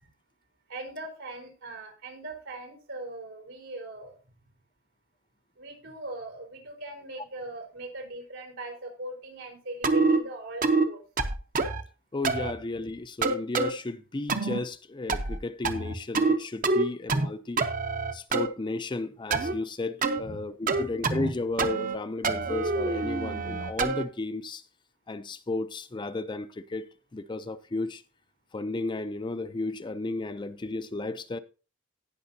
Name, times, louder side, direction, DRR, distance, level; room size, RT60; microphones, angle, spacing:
voice 1, 0.7-4.2 5.6-11.0 20.2-20.4 20.7-20.9, right 2 dB, 85° right, 4.2 m, -40 dB
sound 1, 9.8-10.2 10.6-10.9 11.2-11.8 12.2-12.5 13.2-13.7 14.3-14.6 15.1-15.4 15.6-16.4 16.6-17.3 17.6-18.5 19.3-19.5 20.0-20.2 20.7-21.3 21.6-22.0 22.2-24.0, right 3 dB, 40° right, 0.8 m, -26 dB
voice 2, 12.1-17.6 18.1-24.6 25.1-26.9 27.1-28.0 28.5-31.4, left 2 dB, 25° left, 0.4 m, -33 dB
18.0 x 6.1 x 2.7 m
head